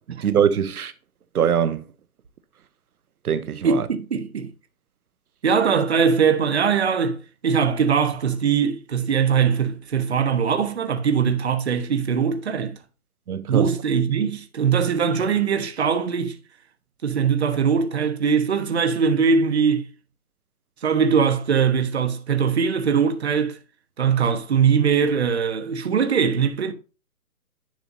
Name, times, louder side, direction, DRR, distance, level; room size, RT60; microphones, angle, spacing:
voice 1, 0.1-0.9 1.3-1.8 3.2-3.9 13.3-13.7, right 8 dB, 85° right, 0.9 m, -22 dB
voice 2, 3.6-4.5 5.4-7.2 7.4-12.8 13.5-16.4 17.0-19.9 20.8-23.6 24.0-26.7, right 6 dB, 45° right, 1.2 m, -21 dB
10.5 x 5.5 x 2.7 m
hypercardioid pair, 175°, 43 cm